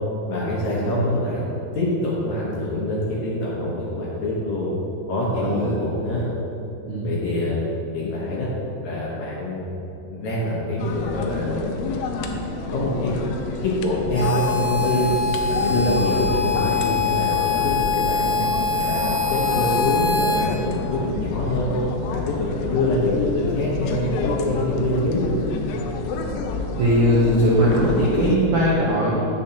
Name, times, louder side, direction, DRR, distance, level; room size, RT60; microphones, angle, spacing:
voice 1, 0.3-1.4 1.7-4.7 5.1-6.3 7.0-7.6 7.9-8.5 8.8-9.7 10.1-11.7 12.1-12.2 12.7-13.4 13.6-15.1 15.5-18.4 18.7-21.7 22.0-25.3, left 1 dB, 70° left, -5 dB, 1.9 m, -25 dB
voice 2, 0.8-1.2 5.4-5.8 6.9-7.1 26.1-26.3 26.8-29.3, equal, 75° right, -6 dB, 1.7 m, -20 dB
sound 1, 10.8-28.4, left 3 dB, 85° left, 2.0 m, -29 dB
Harmonica, 14.1-20.5, left 4 dB, 35° left, 0.6 m, -24 dB
10.5 x 8.9 x 2.9 m, 3.0 s
omnidirectional pair, 4.8 m